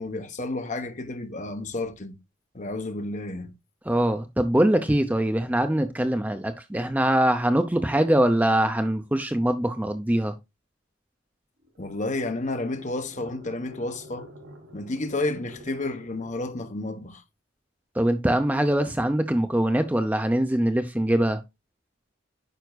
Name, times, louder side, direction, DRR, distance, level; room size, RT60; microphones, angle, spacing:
voice 1, 0.0-2.2 2.5-3.5 11.8-14.3 14.7-17.2, left 2 dB, 35° left, 1.0 m, -31 dB
voice 2, 3.9-10.3 17.9-21.4, right 1 dB, 10° right, 0.6 m, -23 dB
sound 1, 11.6-16.6, right 1 dB, 85° right, 3.3 m, -48 dB
9.2 x 5.8 x 2.3 m
head